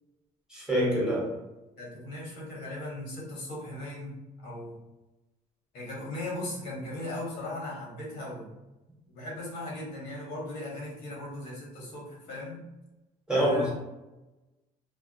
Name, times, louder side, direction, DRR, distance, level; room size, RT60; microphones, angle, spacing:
voice 1, 0.5-1.3 13.3-13.7, equal, 5° right, -5 dB, 0.9 m, -25 dB
voice 2, 1.8-4.2 4.4-4.8 5.7-8.5 9.1-12.6 13.3-13.7, left 1 dB, 85° left, -3 dB, 1.0 m, -38 dB
2.3 x 2.1 x 2.7 m, 1.0 s
cardioid pair, 110°, 17 cm